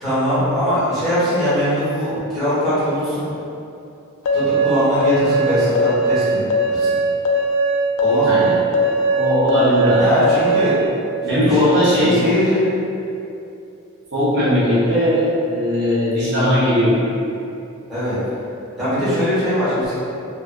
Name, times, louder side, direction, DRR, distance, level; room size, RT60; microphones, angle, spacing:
voice 1, 0.0-3.3 4.3-7.0 8.0-8.4 10.0-10.8 11.3-11.6 12.0-12.6 17.9-18.2 18.8-19.9, equal, ahead, -15 dB, 1.3 m, -21 dB
sound 1, 4.2-10.8, right 1 dB, 90° left, 0.3 m, -19 dB
voice 2, 8.3-8.8 9.1-10.0 11.2-12.2 14.1-17.0, equal, 50° right, -10 dB, 0.6 m, -18 dB
3.2 x 2.3 x 2.4 m, 2.7 s
head